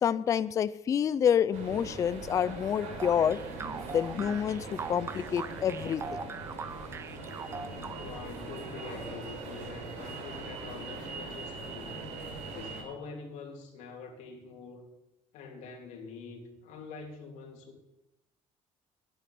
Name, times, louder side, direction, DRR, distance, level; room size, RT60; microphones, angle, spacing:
voice 1, 0.0-3.4 3.9-6.2, left 8 dB, 25° left, 16 dB, 0.4 m, -28 dB
sound 1, 1.5-12.8, right 3 dB, 75° right, 4.2 m, -41 dB
sound 2, 3.0-8.3, right 5 dB, 20° right, 0.5 m, -41 dB
voice 2, 7.9-12.0 12.5-14.9 15.3-17.8, left 4 dB, 75° left, 1 dB, 3.2 m, -45 dB
10.0 x 9.3 x 9.2 m, 0.94 s
cardioid pair, 175°, 12 cm